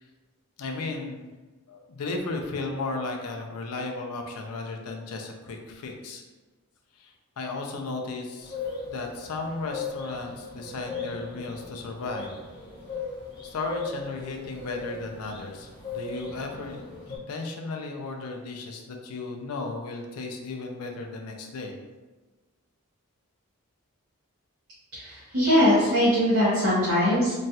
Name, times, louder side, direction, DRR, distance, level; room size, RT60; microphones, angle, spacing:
voice 1, 0.6-1.3 1.7-6.2 6.9-8.6 8.9-12.3 13.4-16.8 17.1-21.8, left 3 dB, 85° left, 2 dB, 0.5 m, -35 dB
sound 1, 8.4-17.2, left 4 dB, 20° left, 0.7 m, -38 dB
voice 2, 24.9-27.3, equal, 55° right, -10 dB, 0.8 m, -21 dB
3.0 x 2.3 x 2.7 m, 1.2 s
head